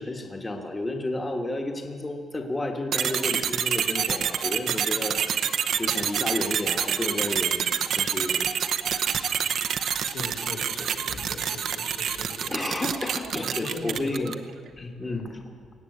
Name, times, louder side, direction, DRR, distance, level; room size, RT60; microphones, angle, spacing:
voice 1, 0.0-5.2 5.8-7.7 8.0-8.5 12.5-14.4 14.8-15.5, left 2 dB, 20° left, 2 dB, 1.4 m, -31 dB
sound 1, 2.9-14.5, right 8 dB, 65° right, 0.8 m, -27 dB
voice 2, 10.0-12.6 13.6-14.3 15.0-15.3, left 3 dB, 80° left, -3 dB, 3.5 m, -39 dB
20.0 x 8.5 x 8.1 m, 2.1 s
cardioid pair, 90°, 0 cm